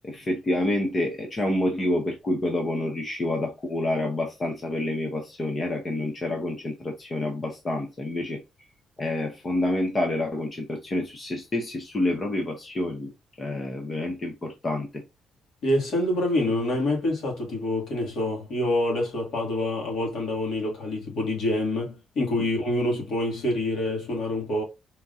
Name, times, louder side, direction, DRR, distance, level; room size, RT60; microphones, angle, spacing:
voice 1, 0.0-8.4 9.0-13.1 13.4-15.0, left 1 dB, 25° left, 0.8 m, -28 dB
voice 2, 15.6-24.6, left 1 dB, 55° left, 2.4 m, -26 dB
4.5 x 3.6 x 2.7 m
cardioid pair, 170°, 0 cm